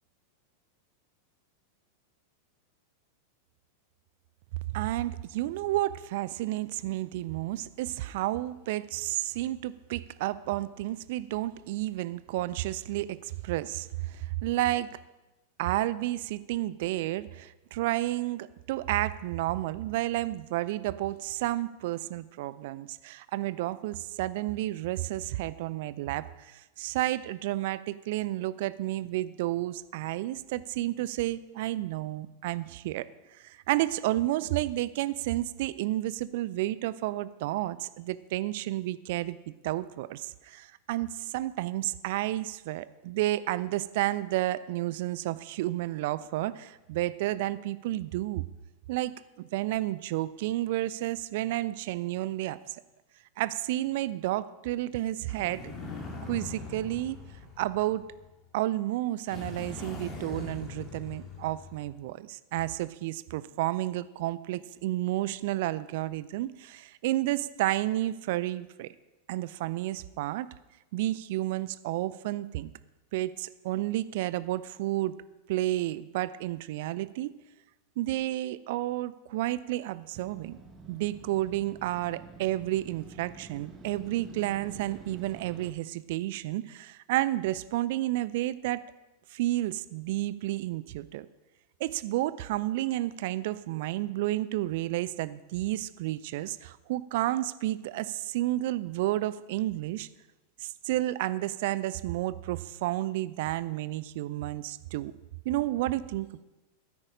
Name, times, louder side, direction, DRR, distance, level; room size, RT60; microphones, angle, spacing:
voice 1, 4.7-14.9 15.6-33.1 33.4-39.4 39.6-48.5 48.9-52.8 53.4-55.7 56.3-57.2 57.6-58.0 58.5-68.9 69.3-70.5 70.9-72.7 73.1-75.1 75.5-77.3 78.0-80.6 80.9-88.8 89.3-91.3 91.8-100.1 100.6-105.1 105.4-106.4, right 15 dB, 50° right, 17 dB, 0.5 m, -31 dB
sound 1, 55.3-58.4 59.3-62.0, left 3 dB, 25° left, 2.4 m, -42 dB
Motorcycle, 80.1-85.7, right 4 dB, 20° right, 1.5 m, -48 dB
13.0 x 9.7 x 5.1 m, 1.0 s
figure-of-eight pair, 90°, 0 cm